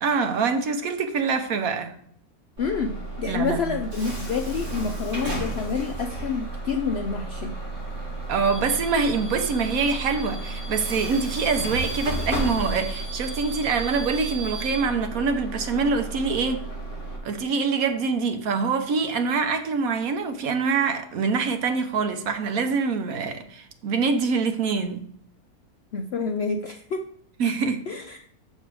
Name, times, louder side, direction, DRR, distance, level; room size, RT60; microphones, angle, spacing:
voice 1, 0.0-1.9 3.2-3.8 8.3-16.6 17.2-25.0 27.4-27.8, right 5 dB, 70° right, 1.3 m, -25 dB
voice 2, 2.6-7.6 25.9-27.0 27.9-28.2, left 5 dB, 70° left, 0.6 m, -28 dB
Bus / Alarm, 2.6-17.2, right 2 dB, 50° right, 3.1 m, -32 dB
6.5 x 6.5 x 4.6 m
omnidirectional pair, 1.6 m